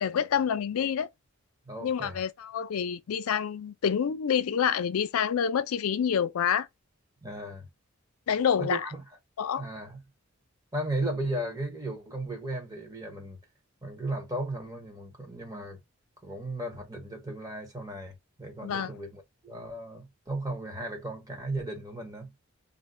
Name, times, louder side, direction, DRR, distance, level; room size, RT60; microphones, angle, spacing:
voice 1, 0.0-1.1 1.8-6.7 8.3-8.8 9.4-9.7 18.6-18.9, left 7 dB, 85° left, 0.4 m, -27 dB
voice 2, 1.6-2.2 7.2-7.7 8.6-9.0 9.6-10.0 10.7-13.4 13.8-15.8 16.2-22.3, right 1 dB, 15° right, 0.7 m, -35 dB
2.4 x 2.2 x 3.6 m
head